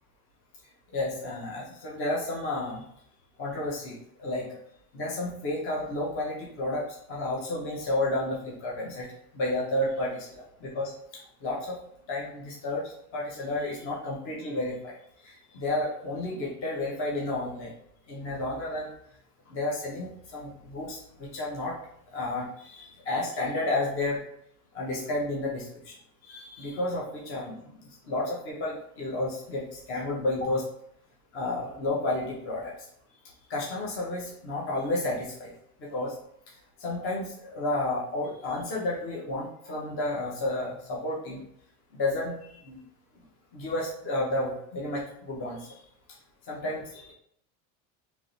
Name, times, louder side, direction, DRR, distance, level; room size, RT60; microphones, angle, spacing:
voice 1, 0.9-2.8 3.4-4.6 4.9-9.1 9.3-10.9 11.4-11.8 12.1-15.0 15.2-17.7 18.1-18.9 19.5-21.7 22.1-24.2 24.7-25.9 26.2-30.6 31.3-32.7 33.5-35.5 35.8-36.2 36.8-41.4 41.9-42.8 43.5-45.8 46.5-47.1, left 2 dB, 30° left, -4 dB, 0.9 m, -31 dB
3.6 x 3.0 x 4.0 m, 0.69 s
cardioid pair, 165°, 41 cm